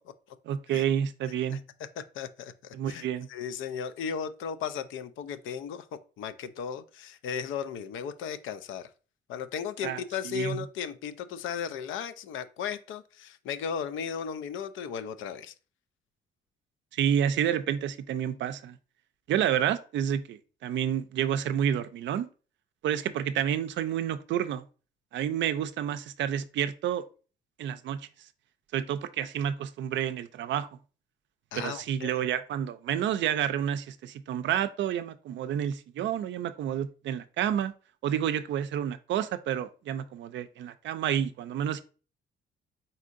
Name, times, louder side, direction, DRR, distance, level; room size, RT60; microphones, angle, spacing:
voice 1, 0.5-1.6 2.7-3.3 9.8-10.0 10.2-10.6 16.9-18.8 19.3-22.3 22.8-24.6 25.1-27.0 27.6-28.1 28.7-30.7 31.5-37.7 38.0-41.8, right 9 dB, 70° right, 0.4 m, -29 dB
voice 2, 2.0-5.9 6.2-8.9 9.3-15.5 31.5-32.2, left 7 dB, 80° left, 0.4 m, -36 dB
4.2 x 3.6 x 2.5 m
cardioid pair, 90°, 20 cm